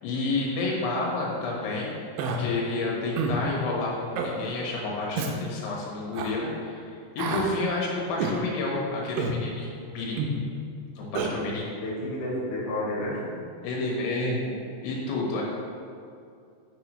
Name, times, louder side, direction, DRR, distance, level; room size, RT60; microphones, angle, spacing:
voice 1, 0.0-1.9 2.2-10.3 11.0-11.7 13.6-15.4, left 2 dB, 90° left, -4 dB, 4.0 m, -30 dB
Human voice, 2.2-2.4 3.2-3.4 4.2-4.3 5.2-5.3 6.1-6.3 7.2-7.5 8.2-8.4 9.2-9.4 10.2-10.4 11.2-11.3, right 4 dB, 85° right, 2.7 m, -28 dB
voice 2, 11.8-13.4, left 1 dB, 65° left, -6 dB, 2.1 m, -31 dB
8.0 x 6.8 x 3.1 m, 2.4 s
omnidirectional pair, 5.7 m